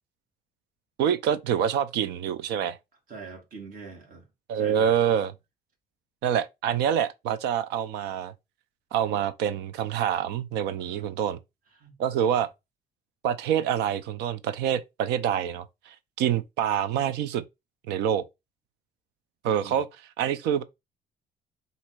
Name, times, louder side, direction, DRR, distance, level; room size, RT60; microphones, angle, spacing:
voice 1, 1.0-2.8 4.5-5.3 6.2-8.3 8.9-11.4 12.0-12.5 13.2-17.4 17.9-18.2 19.4-19.9 20.2-20.6, right 9 dB, 90° right, 0.6 m, -26 dB
voice 2, 3.1-4.3 4.5-5.0 10.8-11.2 11.8-12.3 19.6-19.8, right 4 dB, 55° right, 2.2 m, -44 dB
4.2 x 2.8 x 4.5 m
cardioid pair, 110°, 17 cm